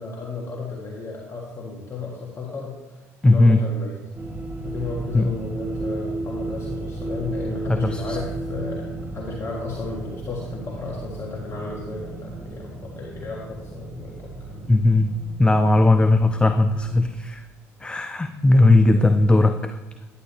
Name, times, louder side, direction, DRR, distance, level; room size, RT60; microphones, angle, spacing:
voice 1, 0.0-2.8 3.2-4.0 4.6-8.9 9.1-14.9 18.9-19.2, left 3 dB, 35° left, -2 dB, 1.4 m, -34 dB
voice 2, 3.2-3.6 5.1-5.3 7.7-8.2 14.7-15.1 15.4-17.4 17.8-19.8, left 2 dB, 10° left, 9 dB, 0.4 m, -17 dB
sound 1, 4.2-17.1, right 2 dB, 25° right, 1.1 m, -34 dB
9.5 x 8.3 x 3.0 m, 1.1 s
hypercardioid pair, 60°, 8 cm